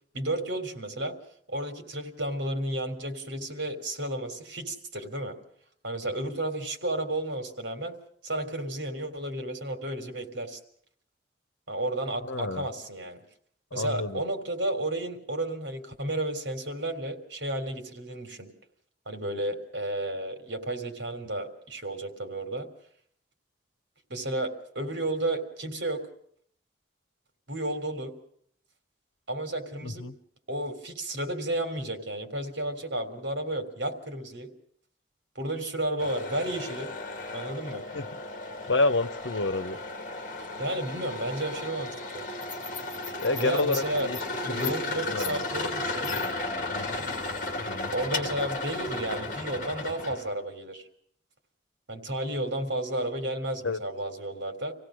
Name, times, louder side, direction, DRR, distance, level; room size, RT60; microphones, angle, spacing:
voice 1, 0.1-1.1 1.5-5.4 5.8-8.0 8.2-10.6 11.7-13.2 13.7-18.5 19.1-22.7 24.1-26.0 27.5-28.1 29.3-30.1 30.5-34.5 35.4-36.9 37.3-37.8 40.6-42.2 43.3-44.1 44.4-46.1 47.9-50.8 51.9-54.7, right 1 dB, 75° right, 6 dB, 3.4 m, -32 dB
voice 2, 12.3-12.6 13.7-14.2 29.8-30.1 37.9-38.0 38.7-39.8 43.2-44.2 44.5-44.7 45.1-45.4 46.7-47.1 47.6-47.9 53.6-53.8, left 2 dB, 85° left, 10 dB, 1.1 m, -29 dB
sound 1, 36.0-50.3, left 2 dB, 45° left, 2.4 m, -34 dB
26.5 x 16.5 x 6.4 m, 0.64 s
head